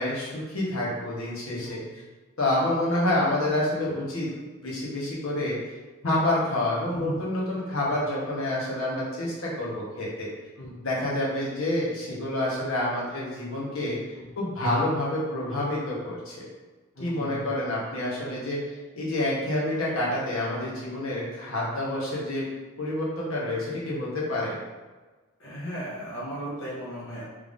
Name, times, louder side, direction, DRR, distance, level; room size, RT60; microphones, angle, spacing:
voice 1, 0.0-1.8 2.4-4.3 4.6-5.7 6.0-10.3 10.8-14.0 14.4-16.5 17.0-18.6 19.0-22.5 22.8-24.6, left 1 dB, 85° left, -5 dB, 1.0 m, -28 dB
voice 2, 16.9-17.5 25.4-27.2, equal, 60° left, -8 dB, 0.8 m, -36 dB
3.5 x 3.2 x 2.5 m, 1.3 s
head